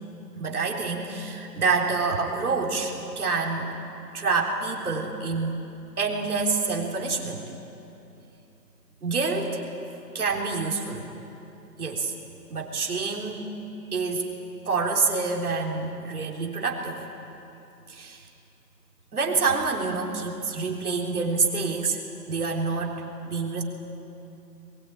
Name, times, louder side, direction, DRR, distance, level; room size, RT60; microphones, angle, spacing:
voice 1, 0.3-3.7 4.1-5.6 6.0-7.4 9.0-9.6 10.1-11.1 11.8-12.1 12.5-13.5 13.9-14.3 14.7-17.0 17.9-18.2 19.1-22.0 22.3-23.0 23.2-23.6, right 4 dB, 60° right, 0 dB, 3.8 m, -27 dB
22.0 x 21.5 x 9.1 m, 3.0 s
hypercardioid pair, 170°, 50 cm